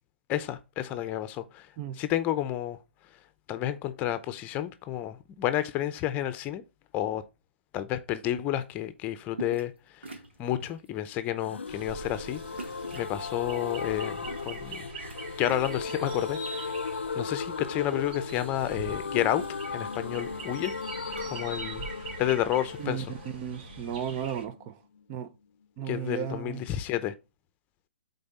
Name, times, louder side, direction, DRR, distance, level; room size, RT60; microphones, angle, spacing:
voice 1, 0.3-1.6 2.0-2.8 3.5-6.6 6.9-7.2 7.7-9.7 10.4-14.9 15.4-16.8 17.2-19.4 19.7-20.7 21.3-21.9 22.2-23.1 25.9-27.1, left 12 dB, 25° left, 0.7 m, -30 dB
sound 1, 9.3-9.8 10.0-10.9 11.4-11.6 12.6-13.2 14.0-15.2 15.4-16.6 17.0-17.7 18.0-18.1 18.3-21.4, right 3 dB, 85° right, 1.9 m, -45 dB
sound 2, 11.4-25.0 25.3-25.4 25.6-25.7, left 5 dB, 85° left, 0.5 m, -37 dB
sound 3, 11.7-24.4, right 3 dB, 50° right, 3.0 m, -43 dB
voice 2, 23.3-24.8 25.1-25.3 25.8-26.6, right 9 dB, 30° right, 0.6 m, -34 dB
8.6 x 4.1 x 4.1 m
hypercardioid pair, 135°, 6 cm